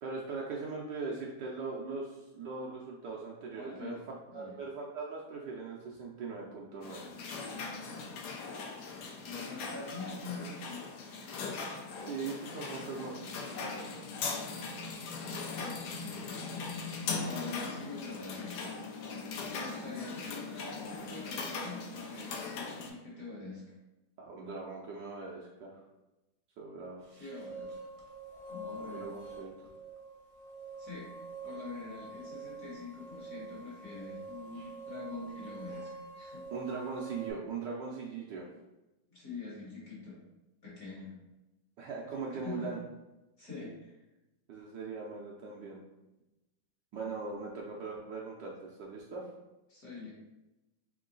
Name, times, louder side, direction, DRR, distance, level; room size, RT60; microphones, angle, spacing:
voice 1, 0.0-4.0 4.3-7.1 12.0-13.1 24.2-25.8 26.6-27.0 28.8-29.5 36.5-38.5 41.8-42.8 44.5-45.8 46.9-49.3, right 4 dB, 70° right, -3 dB, 1.1 m, -40 dB
voice 2, 3.5-4.0 4.3-4.5 9.2-10.9 15.5-16.2 17.2-18.6 19.5-23.6 27.1-27.7 28.5-29.1 30.8-31.1 31.4-36.4 39.1-40.2 40.6-41.2 42.4-42.7 43.4-44.0 49.7-50.1, left 3 dB, 50° left, -5 dB, 1.2 m, -44 dB
sound 1, 6.8-22.9, left 4 dB, 70° left, 1.0 m, -40 dB
sound 2, 27.0-37.3, right 3 dB, 45° right, 0.9 m, -46 dB
3.7 x 3.1 x 3.8 m, 1.0 s
omnidirectional pair, 2.3 m